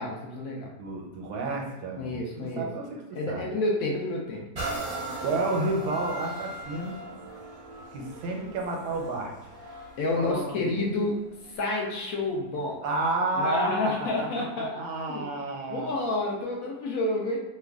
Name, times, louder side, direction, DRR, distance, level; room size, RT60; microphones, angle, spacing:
voice 1, 0.0-0.7 2.0-2.7 3.1-4.4 10.0-11.2 11.4-12.8 13.4-14.8 15.1-15.3 15.7-17.4, left 2 dB, 70° left, -2 dB, 0.9 m, -29 dB
voice 2, 0.8-3.5 5.2-7.0 7.9-9.3 10.2-10.9 12.8-15.9, right 2 dB, 75° right, 1 dB, 1.2 m, -31 dB
sound 1, 4.5-12.2 12.7-12.8, right 2 dB, 55° right, 0.4 m, -39 dB
3.0 x 2.2 x 3.5 m, 1.0 s
omnidirectional pair, 1.8 m